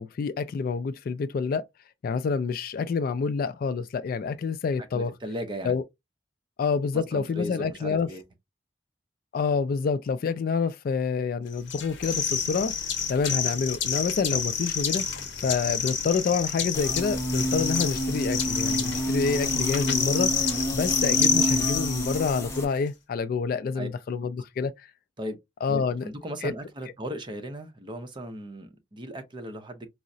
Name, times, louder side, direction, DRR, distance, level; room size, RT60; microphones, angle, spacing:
voice 1, 0.0-1.6 2.0-5.1 5.6-5.8 6.6-8.1 9.3-12.7 13.1-15.0 15.4-24.7 25.6-26.0 26.4-26.5, left 5 dB, 50° left, 0.3 m, -27 dB
voice 2, 4.9-5.8 6.9-8.2 23.7-23.9 25.2-25.4 25.7-29.9, equal, 25° right, 0.6 m, -37 dB
sound 1, 11.7-22.6, left 6 dB, 75° left, 0.8 m, -28 dB
sound 2, 16.7-22.6, right 1 dB, 15° left, 0.7 m, -29 dB
4.6 x 2.0 x 2.6 m
head